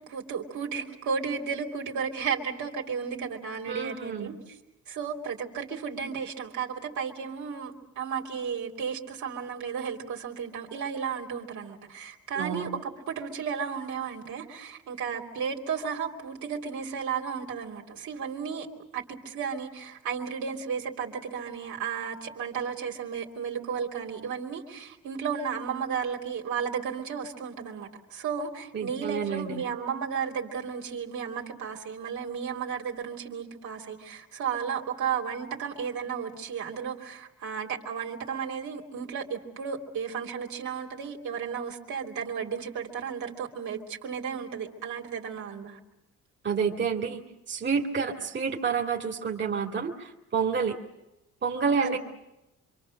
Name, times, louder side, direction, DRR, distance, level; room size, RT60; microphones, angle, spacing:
voice 1, 0.1-4.4 4.9-18.7 18.9-45.8 51.7-52.0, right 6 dB, 70° right, 0 dB, 3.2 m, -34 dB
voice 2, 3.7-4.3 12.4-12.7 28.7-29.6 46.4-47.2 47.5-50.8 51.4-52.0, right 6 dB, 40° right, 0 dB, 2.5 m, -29 dB
27.0 x 24.0 x 6.5 m, 0.94 s
cardioid pair, 90°, 30 cm